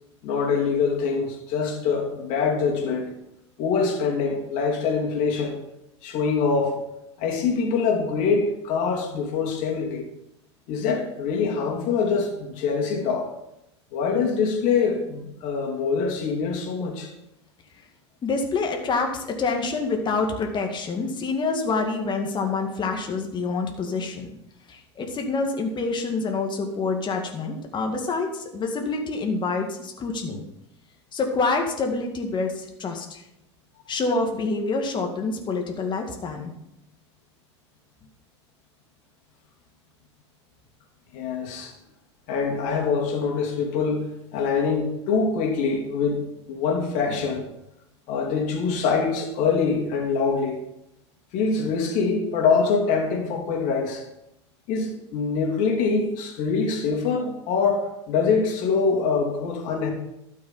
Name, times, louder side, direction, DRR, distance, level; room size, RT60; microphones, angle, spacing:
voice 1, 0.2-3.1 3.6-5.6 6.0-6.8 7.2-10.1 10.7-13.3 13.9-17.1 41.1-41.7 42.3-47.4 48.1-50.6 51.3-54.0 54.7-59.9, left 5 dB, 55° left, 1 dB, 3.0 m, -24 dB
voice 2, 18.2-24.3 24.7-30.4 31.1-33.2 33.9-36.5, left 3 dB, 30° left, 2 dB, 2.1 m, -27 dB
12.5 x 6.6 x 5.7 m, 0.84 s
hypercardioid pair, 90°, 15 cm